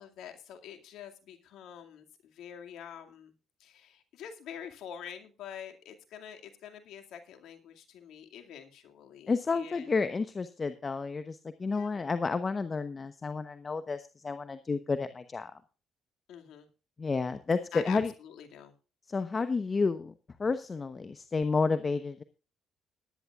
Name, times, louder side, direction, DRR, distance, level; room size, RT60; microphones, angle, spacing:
voice 1, 0.0-3.3 3.6-9.9 11.7-11.9 16.3-16.7 17.7-18.7, left 8 dB, 75° left, 5 dB, 2.2 m, -46 dB
voice 2, 9.3-15.5 17.0-18.1 19.1-20.1 20.4-22.2, left 4 dB, 35° left, 11 dB, 0.9 m, -31 dB
18.5 x 11.0 x 2.4 m, 0.33 s
supercardioid pair, 70°, 0 cm